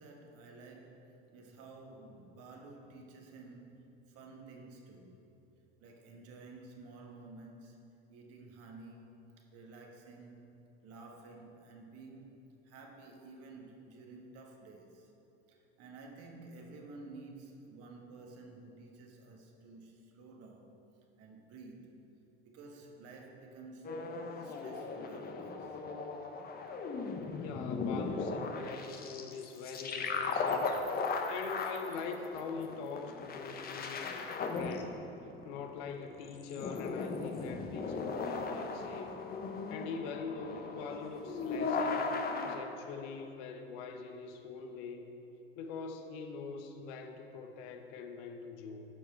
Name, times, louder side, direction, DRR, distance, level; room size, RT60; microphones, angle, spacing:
voice 1, 0.0-5.2 5.8-10.5 10.8-12.4 12.6-15.1 15.5-20.7 21.2-21.9 22.4-24.0 24.3-25.8, right 3 dB, 50° right, 2 dB, 1.4 m, -52 dB
sound 1, 23.8-42.6, left 4 dB, 30° left, 0.9 m, -37 dB
voice 2, 27.3-30.7 31.3-35.0 35.4-39.2 39.7-42.1 42.4-45.1 45.6-48.8, left 5 dB, 60° left, 5 dB, 0.9 m, -43 dB
12.5 x 4.9 x 4.5 m, 2.8 s
hypercardioid pair, 80°, 30 cm